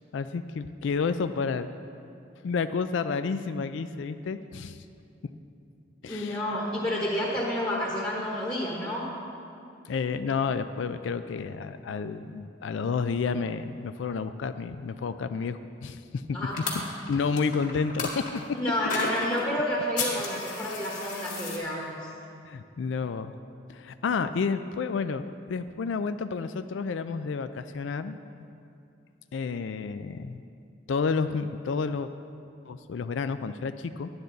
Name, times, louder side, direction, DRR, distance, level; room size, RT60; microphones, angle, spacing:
voice 1, 0.1-1.7 2.4-4.8 6.0-6.4 9.9-16.4 17.1-18.4 22.4-23.3 23.7-28.2 29.3-30.4 30.9-32.1 32.7-34.1, left 5 dB, 75° left, 11 dB, 0.4 m, -30 dB
voice 2, 6.0-9.1 16.3-16.8 18.5-22.1, left 1 dB, 20° left, -5 dB, 1.3 m, -30 dB
sound 1, 16.5-18.3 18.9-19.5 20.0-21.6, left 3 dB, 40° left, 1.9 m, -33 dB
11.5 x 9.7 x 4.0 m, 2.6 s
head